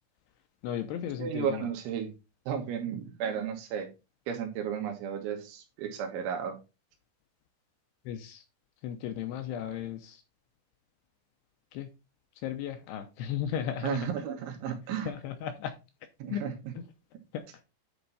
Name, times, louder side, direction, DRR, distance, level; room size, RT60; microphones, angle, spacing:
voice 1, 0.6-1.7 8.1-8.4 8.8-10.2 11.7-11.9 12.4-14.0 15.1-15.7 16.3-16.5 16.8-16.9 17.3-17.4, left 9 dB, 75° left, 7 dB, 2.6 m, -35 dB
voice 2, 1.2-2.1 2.5-3.9 4.3-6.6 13.8-15.1 16.2-16.7, right 8 dB, 80° right, 4 dB, 3.8 m, -33 dB
10.0 x 4.5 x 4.1 m, 0.28 s
omnidirectional pair, 5.4 m